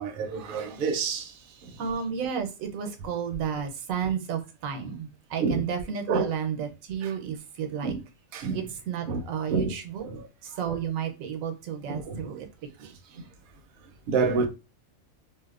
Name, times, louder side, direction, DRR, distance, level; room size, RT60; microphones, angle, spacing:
voice 1, 0.0-1.3 1.6-1.7 5.4-5.6 6.1-6.3 7.8-8.0 8.3-8.6 9.1-9.2 9.5-9.7 10.0-10.2 11.9-12.2 14.1-14.5, right 4 dB, 60° right, 0.6 m, -27 dB
voice 2, 1.8-8.0 8.5-10.0 10.4-12.5 12.8-12.9, right 7 dB, 90° right, 1.0 m, -32 dB
2.9 x 2.0 x 2.3 m
omnidirectional pair, 1.3 m